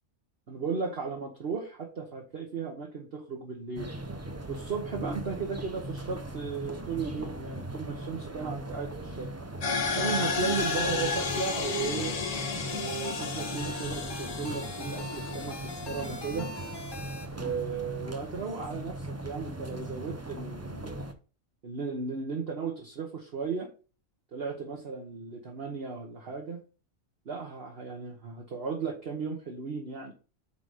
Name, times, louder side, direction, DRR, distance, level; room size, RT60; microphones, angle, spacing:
voice 1, 0.5-3.9 4.5-9.3 9.9-12.1 12.6-16.5 17.3-21.1 21.6-23.7 24.3-26.6 27.2-30.1, right 5 dB, 50° right, 0 dB, 1.3 m, -35 dB
sound 1, 3.8-21.1, right 1 dB, 20° right, 0.5 m, -39 dB
sound 2, 9.6-16.2, left 5 dB, 60° left, 1.4 m, -32 dB
sound 3, 10.1-17.3, left 2 dB, 25° left, 0.6 m, -43 dB
8.3 x 4.0 x 5.0 m, 0.35 s
omnidirectional pair, 1.4 m